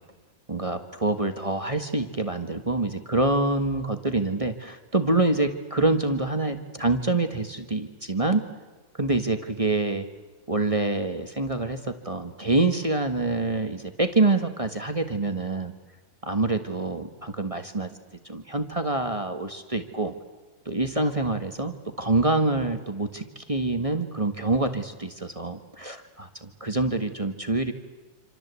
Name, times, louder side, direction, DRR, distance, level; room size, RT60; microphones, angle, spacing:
voice 1, 0.5-8.4 9.0-10.1 10.5-15.7 16.2-17.9 18.2-20.1 20.6-27.7, right 2 dB, 20° right, 7 dB, 1.4 m, -26 dB
27.5 x 26.5 x 8.3 m, 1.2 s
omnidirectional pair, 2.1 m